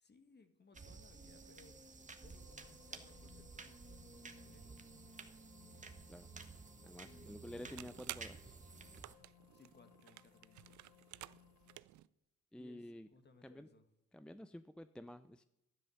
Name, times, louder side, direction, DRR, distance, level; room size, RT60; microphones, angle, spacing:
voice 1, 0.0-4.8 7.0-7.7 9.5-10.9 12.6-13.9, left 3 dB, 35° left, 8 dB, 2.0 m, -65 dB
sound 1, 0.7-9.1, right 4 dB, 25° right, 1.5 m, -54 dB
sound 2, 2.4-11.8, left 14 dB, 85° left, 1.1 m, -66 dB
voice 2, 6.8-8.6 12.5-13.1 13.4-13.7 14.1-15.4, left 1 dB, 5° left, 11 dB, 0.5 m, -51 dB
sound 3, 7.4-12.1, right 15 dB, 70° right, 0.6 m, -53 dB
12.0 x 10.5 x 6.5 m, 0.84 s
cardioid pair, 90°, 30 cm